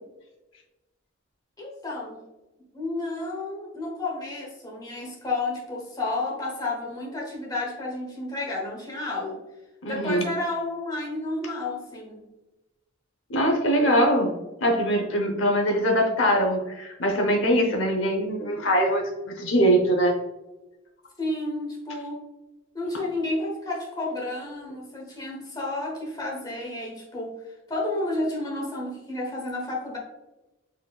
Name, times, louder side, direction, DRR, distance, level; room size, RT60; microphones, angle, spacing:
voice 1, 1.6-2.2 2.7-9.4 9.9-12.2 21.2-22.2 22.7-27.3 27.7-30.0, left 2 dB, 20° left, -3 dB, 1.1 m, -31 dB
voice 2, 9.8-10.3 13.3-14.3 14.6-20.2, equal, 70° left, 2 dB, 0.8 m, -22 dB
4.3 x 3.9 x 2.3 m, 1.0 s
head